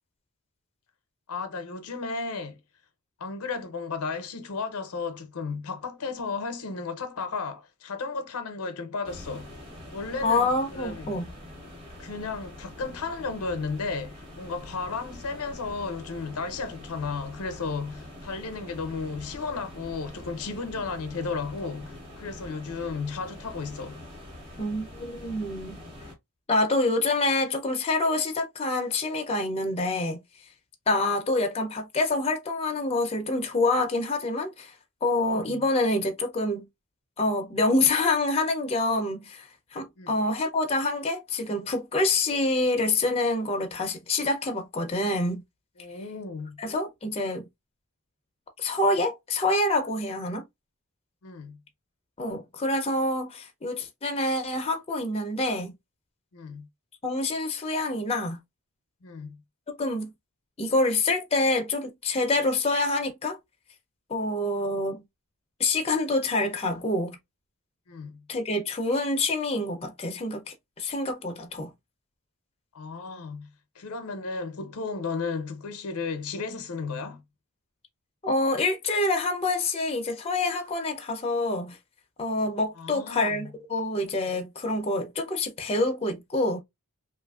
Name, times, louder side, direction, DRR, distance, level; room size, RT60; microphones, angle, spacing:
voice 1, 1.3-2.6 3.2-9.5 9.9-11.2 12.0-24.0 35.3-35.6 40.0-40.1 45.8-46.6 51.2-51.6 56.3-56.7 59.0-59.4 67.9-68.2 72.7-73.5 73.8-77.2 82.8-83.5, left 4 dB, 75° left, 0.6 m, -34 dB
sound 1, 9.0-26.1, left 1 dB, 25° right, 1.2 m, -44 dB
voice 2, 10.2-11.3 24.6-25.8 26.5-30.2 30.9-34.7 35.0-36.7 37.2-45.4 46.6-47.5 48.6-50.4 52.2-55.7 57.0-58.4 59.8-60.1 60.6-63.4 64.1-65.0 65.6-67.2 68.3-71.7 78.2-81.8 82.2-86.6, left 2 dB, 25° left, 0.5 m, -26 dB
2.9 x 2.4 x 2.3 m
head